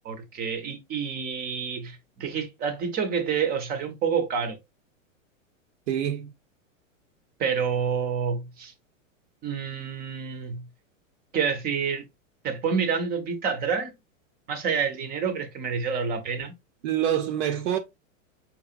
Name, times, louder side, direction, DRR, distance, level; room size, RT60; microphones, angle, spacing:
voice 1, 0.0-4.6 7.4-8.7 9.4-10.7 11.3-12.1 12.4-13.9 14.5-16.5, right 6 dB, 25° right, 0.6 m, -28 dB
voice 2, 5.9-6.3 16.8-17.8, right 10 dB, 65° right, 0.7 m, -26 dB
4.7 x 2.9 x 2.4 m
hypercardioid pair, 135°, 40 cm